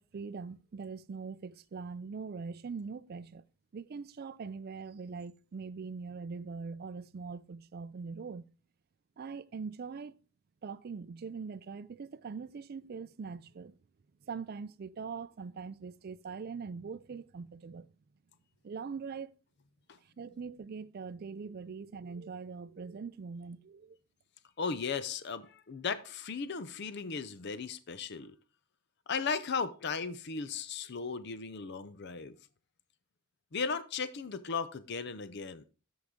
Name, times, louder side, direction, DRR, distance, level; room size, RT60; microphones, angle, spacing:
voice 1, 0.0-3.4 3.7-8.5 9.2-10.2 10.6-13.8 14.3-17.9 18.6-19.3 20.2-24.0, right 5 dB, 45° right, 0.4 m, -42 dB
voice 2, 24.6-28.4 29.1-32.4 33.5-35.6, left 5 dB, 55° left, 0.6 m, -36 dB
13.0 x 4.8 x 3.7 m
head